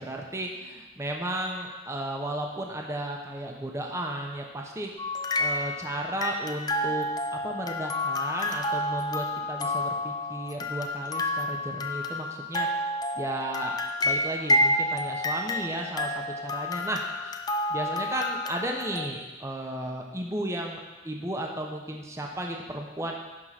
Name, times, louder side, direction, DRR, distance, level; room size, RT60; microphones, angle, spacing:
voice 1, 0.0-4.9 5.4-12.7 13.1-13.8 14.0-17.3 17.7-23.1, right 1 dB, 15° right, 0 dB, 0.9 m, -34 dB
sound 1, 5.0-19.1, left 1 dB, 20° left, 0.5 m, -29 dB
11.0 x 3.8 x 5.8 m, 1.2 s
head